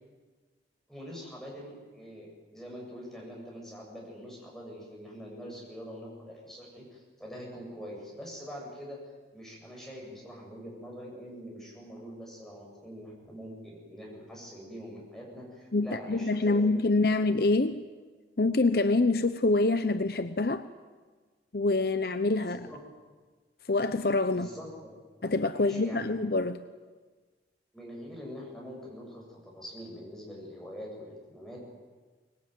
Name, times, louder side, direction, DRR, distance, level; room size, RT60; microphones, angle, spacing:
voice 1, 0.9-16.8 22.4-22.8 24.3-24.9 25.5-26.1 27.7-31.6, equal, ahead, -3 dB, 8.0 m, -44 dB
voice 2, 15.7-17.8 18.4-20.7 21.5-22.7 23.7-24.5 25.2-26.6, left 2 dB, 55° left, 11 dB, 0.8 m, -26 dB
24.0 x 21.0 x 9.4 m, 1.4 s
head